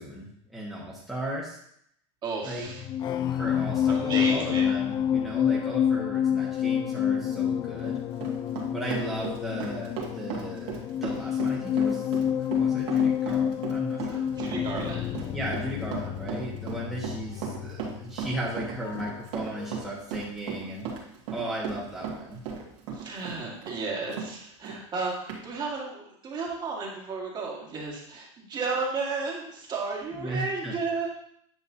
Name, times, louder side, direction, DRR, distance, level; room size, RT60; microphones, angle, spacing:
voice 1, 0.0-1.6 2.4-2.6 3.3-8.0 8.7-14.2 15.3-20.9 21.3-22.4 30.2-30.8, right 1 dB, ahead, -6 dB, 1.4 m, -36 dB
voice 2, 2.2-2.8 3.9-4.7 14.1-15.2 22.9-31.1, right 4 dB, 30° right, -2 dB, 1.8 m, -33 dB
sound 1, 2.7-19.3 19.6-19.9, left 9 dB, 30° left, 0.3 m, -28 dB
Run, 7.6-24.3 24.6-24.8 25.3-25.4, right 6 dB, 70° right, 2.0 m, -36 dB
9.4 x 5.3 x 2.8 m, 0.69 s
supercardioid pair, 135°, 16 cm